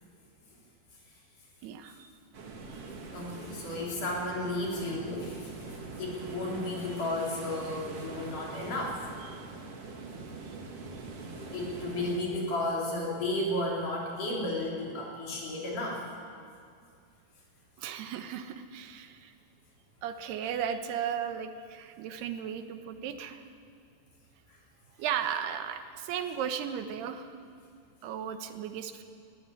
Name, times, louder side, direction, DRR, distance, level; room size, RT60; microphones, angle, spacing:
voice 1, 1.6-2.1 2.7-2.8 9.2-9.4 17.8-19.3 20.0-23.4 25.0-27.3 28.0-29.0, right 8 dB, 75° right, 8 dB, 2.9 m, -35 dB
sound 1, 2.3-12.2, right 3 dB, 45° right, 2.5 m, -43 dB
voice 2, 3.1-5.5 6.0-9.0 11.5-16.0, left 1 dB, 45° left, -3 dB, 5.1 m, -33 dB
19.5 x 15.5 x 9.6 m, 2.4 s
omnidirectional pair, 5.1 m